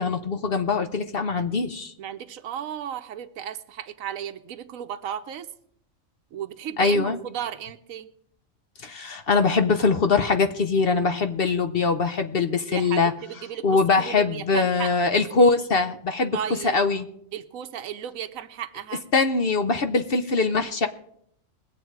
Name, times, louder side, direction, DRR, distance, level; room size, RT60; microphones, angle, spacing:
voice 1, 0.0-1.9 6.8-7.2 8.8-13.1 13.6-16.4 16.6-17.1 19.1-20.9, left 4 dB, 50° left, 8 dB, 0.9 m, -22 dB
voice 2, 2.0-5.5 6.3-8.1 12.7-15.2 16.3-16.8 17.3-19.0, right 9 dB, 85° right, 8 dB, 1.1 m, -35 dB
21.0 x 7.8 x 4.7 m, 0.70 s
omnidirectional pair, 1.4 m